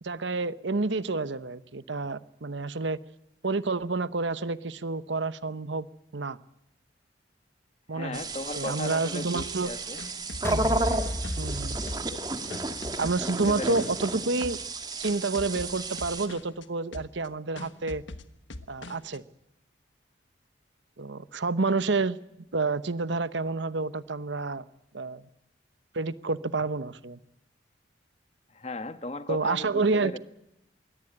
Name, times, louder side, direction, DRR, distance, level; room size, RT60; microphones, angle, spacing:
voice 1, 0.0-3.0 3.4-5.9 6.1-6.4 7.9-8.2 8.6-9.7 10.5-10.8 11.4-11.8 13.0-14.6 15.0-18.0 18.7-19.2 21.0-22.2 22.5-24.6 24.9-25.3 25.9-27.2 29.3-30.2, right 3 dB, 75° right, 0.9 m, -29 dB
voice 2, 7.9-10.0 13.2-14.0 28.5-30.2, left 2 dB, 35° left, 1.2 m, -36 dB
sound 1, 8.1-16.3, right 2 dB, 20° right, 1.7 m, -33 dB
sound 2, 9.4-11.6 11.9-14.1 14.4-14.8 15.0-16.7 16.9-17.3 17.6-19.2, left 2 dB, 80° left, 1.4 m, -43 dB
sound 3, 10.4-12.8, equal, 15° left, 0.9 m, -33 dB
22.0 x 17.5 x 8.8 m
head